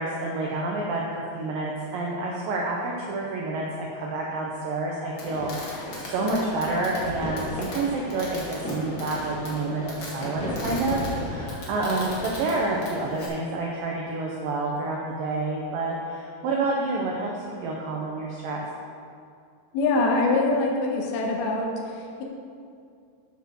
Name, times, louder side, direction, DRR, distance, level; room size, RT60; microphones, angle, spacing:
voice 1, 0.0-5.5 5.9-18.6, right 2 dB, 80° right, -2 dB, 2.0 m, -28 dB
Fireworks, 5.2-13.3, left 1 dB, 55° left, 1.3 m, -35 dB
voice 2, 19.7-22.2, left 2 dB, 70° left, 0 dB, 2.6 m, -24 dB
8.9 x 6.7 x 6.2 m, 2.3 s
omnidirectional pair, 5.2 m